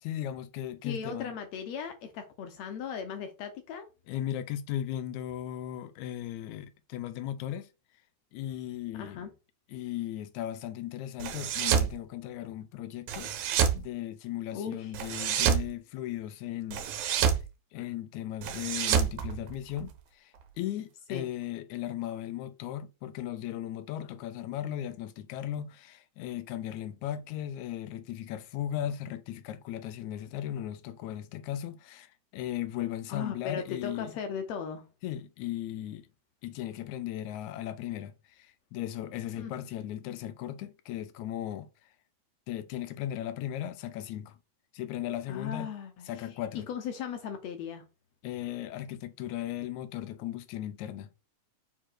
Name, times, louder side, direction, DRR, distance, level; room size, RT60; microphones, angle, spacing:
voice 1, 0.0-1.3 4.1-7.7 8.3-9.3 9.7-13.3 13.7-16.9 17.3-17.4 17.7-34.2 35.0-36.1 36.4-41.7 42.5-44.4 44.7-45.7 46.1-46.7 48.2-51.1, left 12 dB, 90° left, 2.0 m, -37 dB
voice 2, 0.8-3.9 8.9-9.3 14.5-14.9 21.1-21.3 33.1-34.9 39.4-39.5 45.3-47.8, left 7 dB, 70° left, 1.9 m, -37 dB
sound 1, 11.2-11.9 13.1-13.8 14.9-15.7 16.7-17.4 18.4-19.9, right 8 dB, 80° right, 2.2 m, -27 dB
5.1 x 4.5 x 4.5 m
omnidirectional pair, 3.3 m